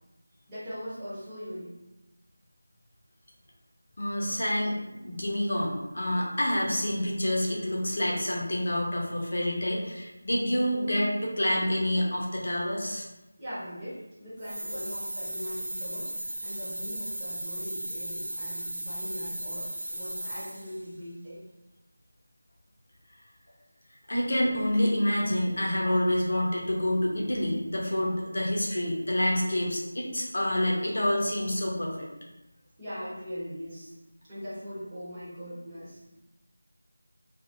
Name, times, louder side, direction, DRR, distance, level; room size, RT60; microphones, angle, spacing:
voice 1, 0.5-1.7 13.4-16.1 16.4-21.4 28.0-28.1 32.8-33.9 34.2-36.1, equal, 15° right, -12 dB, 0.9 m, -40 dB
voice 2, 4.0-13.1 24.1-32.1, left 1 dB, 65° left, -3 dB, 0.8 m, -27 dB
sound 1, 14.4-20.8, right 1 dB, 75° right, 0.6 m, -36 dB
2.8 x 2.5 x 2.6 m, 0.99 s
figure-of-eight pair, 175°, 0 cm